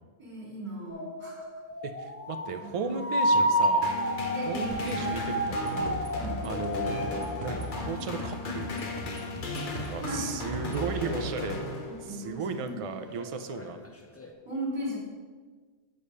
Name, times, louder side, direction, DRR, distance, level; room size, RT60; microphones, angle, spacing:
voice 1, 0.2-1.5 2.6-3.3 4.3-5.2 6.1-6.5 10.0-10.3 11.8-12.9 14.4-15.0, equal, 25° right, -5 dB, 2.7 m, -37 dB
sound 1, 0.9-9.0 10.0-10.1 12.6-12.8 13.1-14.3, right 1 dB, 20° left, 0.4 m, -30 dB
voice 2, 1.8-3.9 4.5-6.0 6.4-7.1 7.4-8.7 9.8-11.6 12.0-13.8, right 5 dB, 50° right, 8 dB, 0.4 m, -35 dB
sound 2, 3.8-12.3, left 3 dB, 50° left, 1.0 m, -36 dB
sound 3, 4.7-10.9, right 2 dB, 65° right, 1.1 m, -42 dB
6.5 x 5.0 x 5.5 m, 1.4 s
omnidirectional pair, 1.2 m